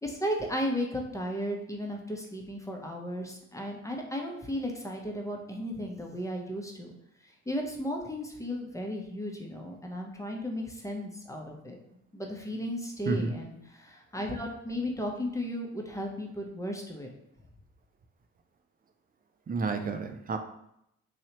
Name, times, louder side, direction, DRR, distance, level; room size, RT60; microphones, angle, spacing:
voice 1, 0.0-6.9 7.5-11.8 12.1-17.1, equal, 10° left, 0 dB, 0.8 m, -35 dB
voice 2, 13.1-13.4 19.5-20.4, right 4 dB, 20° right, 6 dB, 0.5 m, -30 dB
3.2 x 2.7 x 2.9 m, 0.79 s
hypercardioid pair, 40°, 41 cm